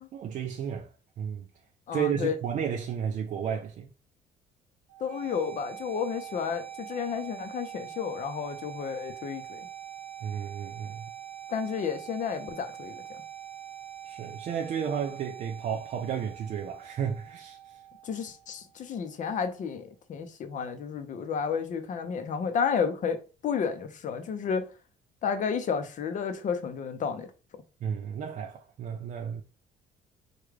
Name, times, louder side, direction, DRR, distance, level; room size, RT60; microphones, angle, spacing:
voice 1, 0.1-0.9 1.2-1.5 1.9-3.9 10.2-11.1 14.0-17.8 27.8-29.4, right 8 dB, 50° right, 0.4 m, -33 dB
voice 2, 1.9-2.3 5.0-9.7 11.5-13.0 18.0-24.7 25.2-27.3, left 6 dB, 50° left, 0.6 m, -31 dB
sound 1, 4.9-18.9, right 10 dB, 90° right, 0.7 m, -44 dB
3.6 x 2.3 x 3.2 m
cardioid pair, 110°, 17 cm